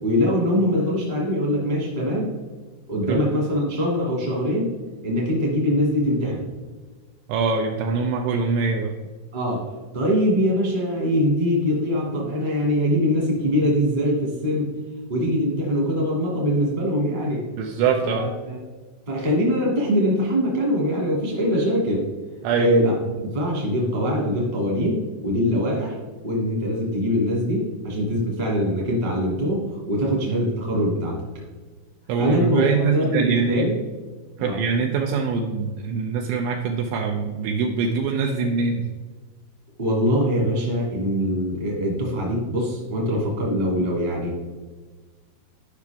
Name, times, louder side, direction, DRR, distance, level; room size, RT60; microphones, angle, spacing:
voice 1, 0.0-2.3 2.9-4.7 5.0-6.4 9.3-9.6 9.9-14.7 15.1-17.5 18.0-18.6 19.1-22.0 22.5-26.0 26.2-31.2 32.2-33.8 34.4-34.6 39.8-44.4, equal, 35° right, -3 dB, 0.7 m, -23 dB
voice 2, 7.3-8.9 17.6-18.3 22.4-22.7 32.1-33.7 34.4-38.8, right 5 dB, 90° right, 2 dB, 2.5 m, -23 dB
12.0 x 5.8 x 3.6 m, 1.4 s
omnidirectional pair, 5.9 m